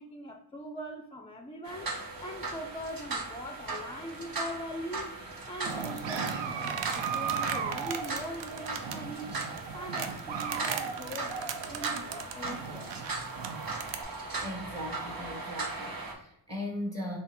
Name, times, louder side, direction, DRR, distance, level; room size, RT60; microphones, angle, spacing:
voice 1, 0.0-5.2 5.5-13.0, equal, 15° left, 4 dB, 0.4 m, -42 dB
sound 1, 1.6-16.1, right 3 dB, 50° right, 0.9 m, -38 dB
sound 2, 5.6-14.0, right 6 dB, 75° right, 0.6 m, -36 dB
voice 2, 14.4-17.2, left 1 dB, 35° right, -1 dB, 1.2 m, -38 dB
3.6 x 3.0 x 2.9 m, 0.79 s
supercardioid pair, 40°, 44 cm